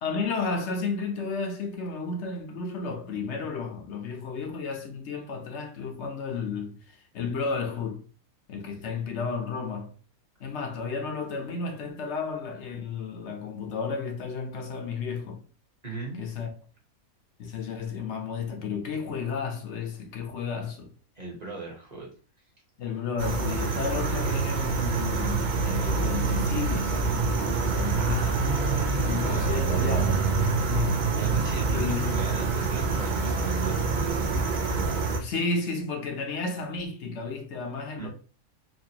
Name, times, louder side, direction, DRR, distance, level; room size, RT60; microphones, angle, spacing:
voice 1, 0.0-6.8 7.1-8.0 8.5-9.9 10.4-15.4 16.2-16.5 17.4-20.9 22.8-28.3 29.0-30.3 30.6-31.0 31.7-32.1 35.2-38.1, left 4 dB, 60° left, 0.9 m, -32 dB
voice 2, 15.8-16.2 21.2-22.1 28.0-29.8 31.2-34.3 37.9-38.1, right 3 dB, 30° right, 1.2 m, -37 dB
sound 1, 23.2-35.2, right 4 dB, 55° right, 0.5 m, -26 dB
4.2 x 2.5 x 2.8 m
omnidirectional pair, 1.5 m